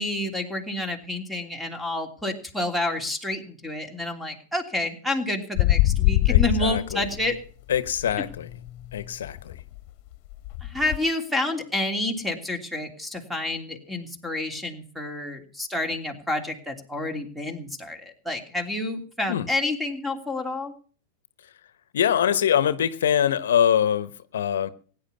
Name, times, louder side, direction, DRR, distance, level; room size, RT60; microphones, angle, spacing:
voice 1, 0.0-7.4 10.6-20.7, left 1 dB, 5° right, 6 dB, 3.1 m, -29 dB
sound 1, 5.5-7.4 7.7-11.0, left 16 dB, 50° left, 1.4 m, -24 dB
voice 2, 6.3-7.1 7.7-8.6 8.9-9.5 19.3-19.5 21.9-24.7, left 9 dB, 80° left, 15 dB, 1.0 m, -24 dB
16.5 x 10.0 x 6.9 m, 0.43 s
hypercardioid pair, 120°, 0 cm